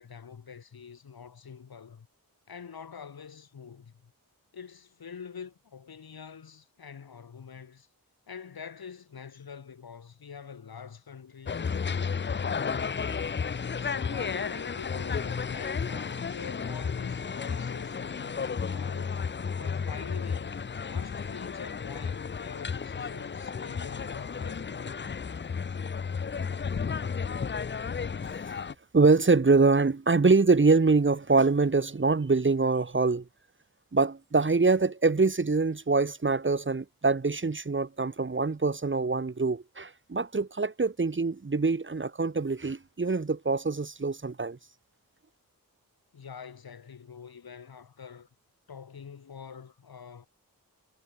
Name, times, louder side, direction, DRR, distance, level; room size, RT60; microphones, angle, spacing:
voice 1, 0.0-2.1 2.5-4.1 4.5-7.9 8.3-13.3 13.8-19.3 19.6-20.6 20.9-24.9 46.1-48.3 48.7-50.3, left 6 dB, 90° left, 6.1 m, -45 dB
sound 1, 11.5-28.7, left 6 dB, 30° left, 0.6 m, -33 dB
voice 2, 28.9-33.2 33.9-44.6, right 3 dB, 35° right, 1.4 m, -24 dB
wide cardioid pair, 70°, 36 cm